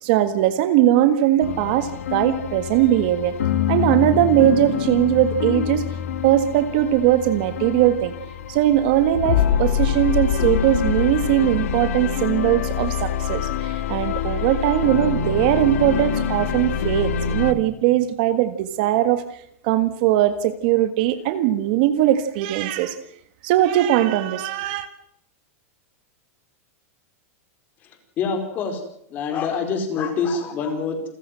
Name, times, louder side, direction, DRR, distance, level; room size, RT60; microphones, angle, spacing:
voice 1, 0.0-3.3 3.7-5.8 6.2-8.1 8.5-19.2 19.6-23.0 23.4-24.9, right 12 dB, 40° right, 11 dB, 1.7 m, -20 dB
sound 1, 1.4-17.5, left 8 dB, 80° left, 2.1 m, -25 dB
voice 2, 28.2-28.8 29.1-31.1, left 5 dB, 25° left, 6 dB, 4.7 m, -25 dB
29.0 x 15.0 x 7.6 m, 0.72 s
supercardioid pair, 175°, 8 cm